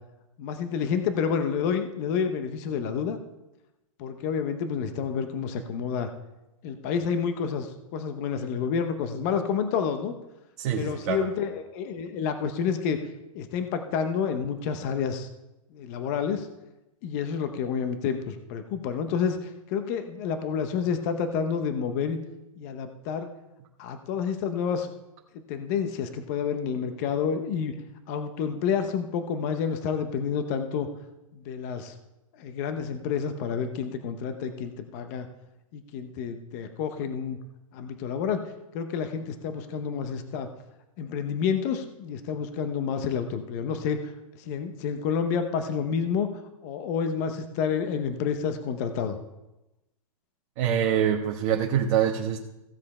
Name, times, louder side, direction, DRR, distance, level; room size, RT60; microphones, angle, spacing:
voice 1, 0.4-3.2 4.0-6.1 6.6-10.1 10.8-13.0 13.3-15.3 15.7-16.5 17.0-22.2 22.6-23.3 23.8-24.9 25.5-27.7 28.1-30.9 31.3-31.9 32.4-35.3 35.7-37.4 37.7-40.5 41.0-46.3 46.6-49.2, left 6 dB, 30° left, 8 dB, 0.8 m, -29 dB
voice 2, 10.6-11.2 50.6-52.4, right 9 dB, 30° right, -1 dB, 1.2 m, -25 dB
15.5 x 7.3 x 4.3 m, 0.96 s
hypercardioid pair, 165°, 18 cm